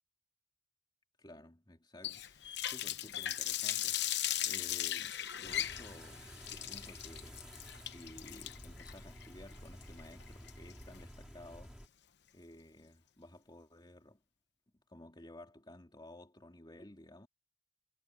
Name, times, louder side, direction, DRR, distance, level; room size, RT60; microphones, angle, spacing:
voice 1, 1.2-6.2 6.5-7.5 7.8-11.9 12.3-14.2 14.9-17.3, left 1 dB, 25° left, 2.5 m, -54 dB
Water tap faucet, 2.0-11.0, left 12 dB, 60° left, 0.9 m, -38 dB
sound 1, 5.4-11.9, equal, 5° right, 2.7 m, -52 dB
head